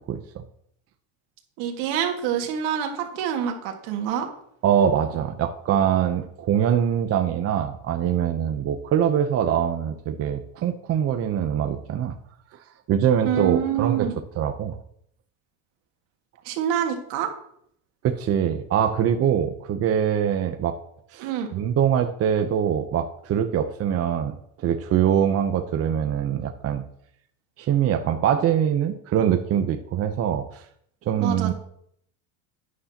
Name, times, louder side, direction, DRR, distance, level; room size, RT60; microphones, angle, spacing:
voice 1, 0.1-0.4 4.6-12.1 12.9-14.1 14.4-14.8 18.0-20.8 21.1-26.8 27.6-30.6 31.0-31.5, right 9 dB, 40° right, 6 dB, 0.8 m, -23 dB
voice 2, 1.6-4.3 13.2-14.2 16.4-17.3 21.2-21.5 31.2-31.5, right 9 dB, 70° right, 3 dB, 2.0 m, -26 dB
11.0 x 9.6 x 2.9 m, 0.68 s
supercardioid pair, 115°, 38 cm